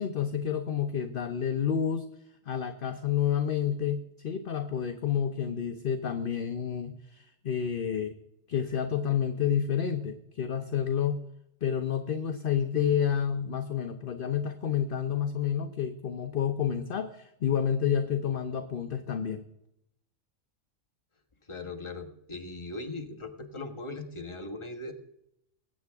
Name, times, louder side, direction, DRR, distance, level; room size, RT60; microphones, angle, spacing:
voice 1, 0.0-2.1 2.5-8.1 8.5-11.2 11.6-19.4, left 8 dB, 50° left, 7 dB, 0.8 m, -29 dB
voice 2, 21.5-24.9, left 2 dB, 25° left, 4 dB, 1.2 m, -39 dB
21.0 x 8.4 x 3.5 m, 0.81 s
omnidirectional pair, 1.3 m